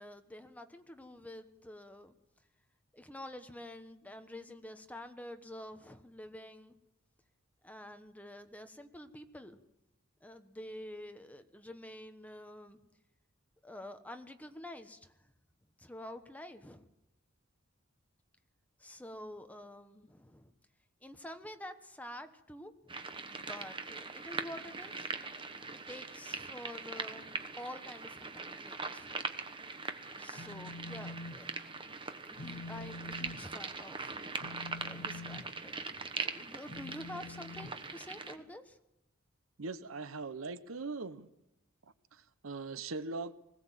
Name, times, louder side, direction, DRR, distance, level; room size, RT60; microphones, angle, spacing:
voice 1, 0.0-2.1 2.9-6.7 7.6-9.6 10.2-12.8 13.6-15.3 15.8-16.9 18.8-20.5 21.0-25.1 25.7-29.2 30.2-31.5 32.1-34.2 34.8-38.8, left 1 dB, 5° left, 1.1 m, -48 dB
sound 1, 22.9-38.4, right 4 dB, 25° right, 1.2 m, -42 dB
Telephone, 30.2-31.4 31.7-32.0 32.3-38.5, left 2 dB, 90° left, 2.0 m, -47 dB
voice 2, 39.6-41.3 42.1-43.4, right 3 dB, 70° right, 0.9 m, -40 dB
20.5 x 17.0 x 7.5 m
head